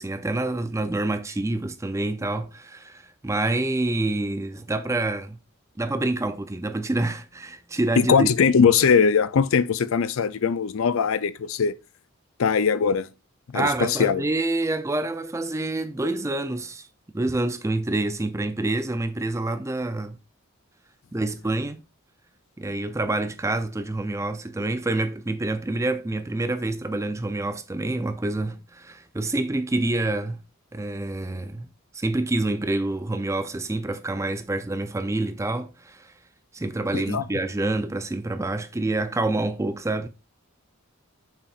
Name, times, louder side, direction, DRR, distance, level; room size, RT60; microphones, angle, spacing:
voice 1, 0.0-5.4 5.8-8.3 13.5-16.9 17.1-20.2 21.1-21.8 22.6-30.4 30.7-31.7 31.9-36.1 36.5-40.1, right 2 dB, 15° right, 0.4 m, -27 dB
voice 2, 8.0-11.7 12.4-13.1 13.5-14.2 36.9-37.2, left 6 dB, 70° left, 0.4 m, -21 dB
6.9 x 5.7 x 2.4 m
head